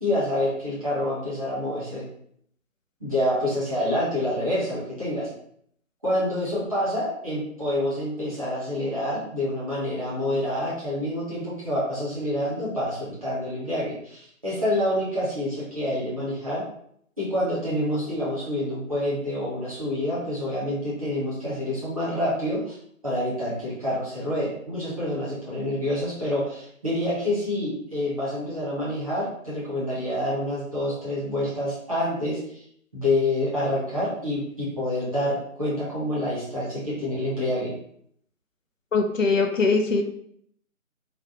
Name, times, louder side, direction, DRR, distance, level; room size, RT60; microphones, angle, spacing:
voice 1, 0.0-2.1 3.0-5.3 6.0-16.6 17.2-22.8 23.0-32.6 32.9-37.7, left 1 dB, 25° right, -9 dB, 1.0 m, -27 dB
voice 2, 38.9-40.0, left 4 dB, 65° left, 5 dB, 0.5 m, -21 dB
3.3 x 2.3 x 2.9 m, 0.68 s
figure-of-eight pair, 170°, 42 cm